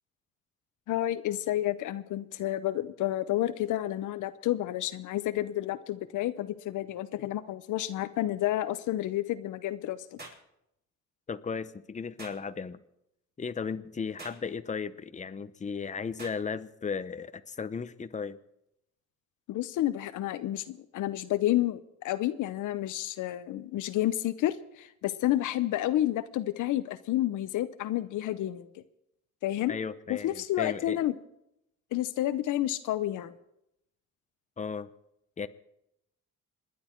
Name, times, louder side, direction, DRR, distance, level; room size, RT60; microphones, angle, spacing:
voice 1, 0.9-10.2 19.5-28.8 29.4-29.7 30.1-31.1 31.9-33.4, left 14 dB, 80° left, 13 dB, 0.8 m, -30 dB
sound 1, 10.2-10.5 12.2-12.4 14.2-14.5 16.2-16.4, right 2 dB, 30° right, 5.2 m, -45 dB
voice 2, 11.3-12.8 13.4-18.4 29.7-31.0 34.6-34.9 35.4-35.5, left 5 dB, 25° left, 12 dB, 0.8 m, -35 dB
27.5 x 10.5 x 4.5 m, 0.81 s
cardioid pair, 90°, 30 cm